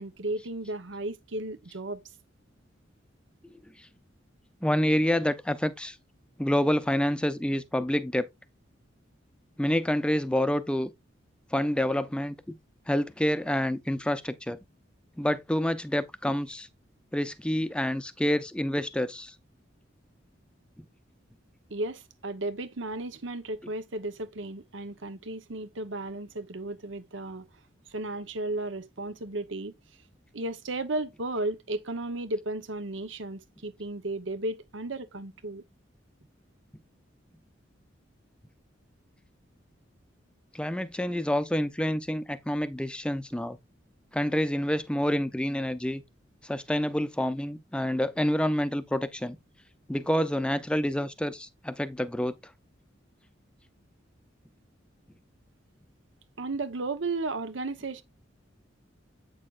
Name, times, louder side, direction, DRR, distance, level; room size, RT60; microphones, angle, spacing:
voice 1, 0.0-2.0 21.7-27.5 27.9-29.7 30.3-35.6 56.4-58.0, right 2 dB, 75° right, 1.0 m, -34 dB
voice 2, 4.6-6.0 6.4-8.3 9.6-10.9 11.5-12.4 12.9-14.6 15.2-16.7 17.1-19.3 40.5-43.6 44.1-46.0 46.4-49.4 49.9-52.3, equal, 5° left, 0.5 m, -28 dB
8.5 x 6.5 x 2.4 m
head